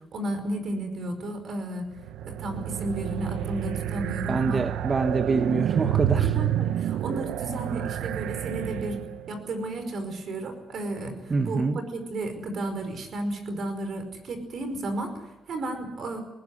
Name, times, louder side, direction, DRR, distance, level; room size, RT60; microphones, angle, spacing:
voice 1, 0.1-1.9 2.2-4.7 6.2-9.0 9.3-11.2 11.4-16.2, right 1 dB, 60° right, 8 dB, 5.1 m, -33 dB
sound 1, 1.9-9.4, right 11 dB, 85° right, 0.9 m, -29 dB
voice 2, 4.3-6.3 11.3-11.8, right 4 dB, 35° right, 9 dB, 1.1 m, -25 dB
20.0 x 18.5 x 9.8 m, 1.0 s
cardioid pair, 90°, 0 cm